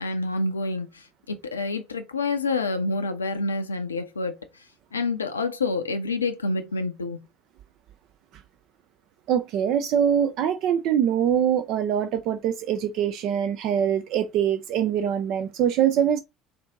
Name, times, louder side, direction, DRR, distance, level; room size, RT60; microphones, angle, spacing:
voice 1, 0.0-4.6 4.9-7.2, left 3 dB, 85° left, 0.4 m, -28 dB
voice 2, 9.3-16.2, right 9 dB, 55° right, 0.4 m, -23 dB
4.3 x 2.6 x 3.7 m
figure-of-eight pair, 60°, 0 cm